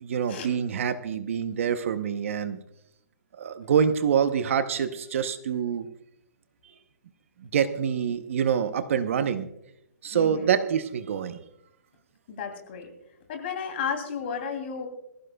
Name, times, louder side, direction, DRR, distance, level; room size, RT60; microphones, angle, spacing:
voice 1, 0.0-2.6 3.3-5.9 7.4-9.5 10.0-11.4, right 7 dB, 45° right, 11 dB, 0.8 m, -26 dB
voice 2, 10.1-10.5 12.3-12.9 13.3-14.9, left 6 dB, 35° left, 5 dB, 2.8 m, -33 dB
23.5 x 15.0 x 2.3 m, 0.79 s
hypercardioid pair, 170°, 10 cm